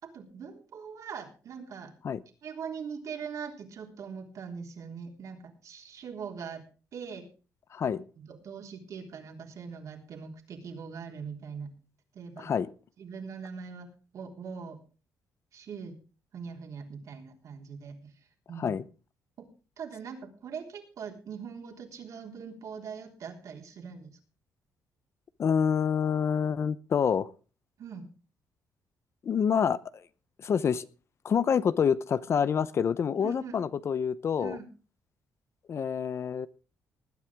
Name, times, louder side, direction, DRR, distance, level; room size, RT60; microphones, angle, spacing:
voice 1, 0.0-1.9 2.4-6.6 6.9-7.2 7.8-11.7 12.1-12.5 13.0-13.9 14.1-14.8 15.5-15.9 16.3-18.1 18.5-18.7 19.4-19.5 19.8-24.2 27.8-28.0 33.2-33.6 34.4-34.7, right 6 dB, 55° right, 3 dB, 3.5 m, -41 dB
voice 2, 7.7-8.0 12.4-12.7 18.6-18.8 25.4-27.3 29.2-29.8 30.4-30.8 31.2-34.6 35.7-36.5, left 7 dB, 45° left, 16 dB, 0.7 m, -27 dB
20.0 x 9.9 x 3.6 m, 0.34 s
cardioid pair, 130°, 7 cm